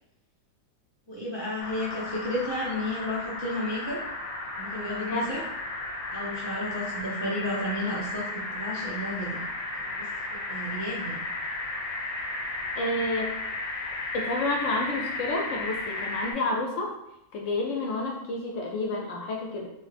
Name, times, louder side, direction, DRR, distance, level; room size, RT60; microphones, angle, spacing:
voice 1, 1.1-4.0 4.6-5.4 6.1-9.4 9.8-10.1 10.5-11.2, left 1 dB, 35° right, -8 dB, 0.4 m, -32 dB
sound 1, 1.6-16.3, left 2 dB, 90° left, 1.1 m, -34 dB
voice 2, 5.0-5.3 12.8-13.4 14.1-16.9 17.3-19.7, left 2 dB, 70° left, 0 dB, 0.8 m, -29 dB
3.0 x 2.0 x 3.2 m, 0.82 s
omnidirectional pair, 1.5 m